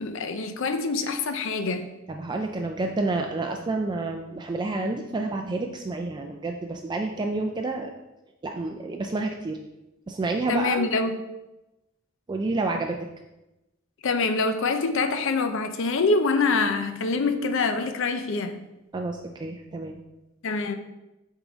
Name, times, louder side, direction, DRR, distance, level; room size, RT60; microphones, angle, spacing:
voice 1, 0.0-1.8 10.5-11.2 14.0-18.6 20.4-20.8, left 3 dB, 65° left, 0.6 m, -25 dB
voice 2, 2.1-7.9 8.4-9.6 10.1-10.9 12.3-13.0 18.9-20.0, right 3 dB, 20° right, 0.3 m, -29 dB
8.0 x 3.7 x 3.9 m
head